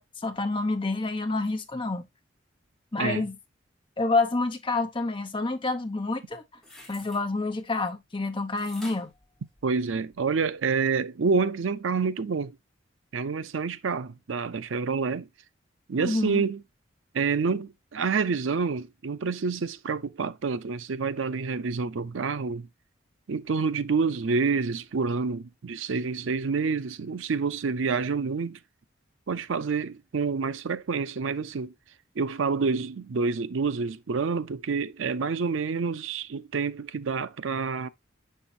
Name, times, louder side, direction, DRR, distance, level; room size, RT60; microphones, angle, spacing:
voice 1, 0.0-2.0 2.9-3.3 4.0-6.4 6.9-9.1 16.0-16.4, left 3 dB, 25° left, 0.8 m, -28 dB
sound 1, 6.3-7.2 8.6-10.1 10.6-10.7, left 1 dB, ahead, 2.9 m, -48 dB
voice 2, 9.6-12.6 13.1-15.3 15.9-16.6 17.1-22.7 23.3-28.6 29.3-31.7 32.2-37.9, right 5 dB, 85° right, 0.5 m, -28 dB
7.0 x 5.6 x 2.6 m
head